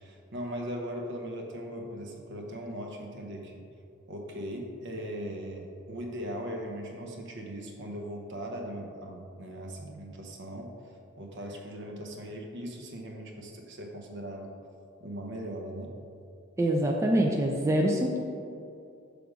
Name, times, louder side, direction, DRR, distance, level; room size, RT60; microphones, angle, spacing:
voice 1, 0.0-3.6 4.1-14.5 15.0-15.9, equal, 60° right, 1 dB, 0.8 m, -39 dB
voice 2, 16.6-18.2, right 1 dB, 15° right, 0 dB, 0.3 m, -25 dB
6.1 x 3.4 x 5.0 m, 2.5 s
head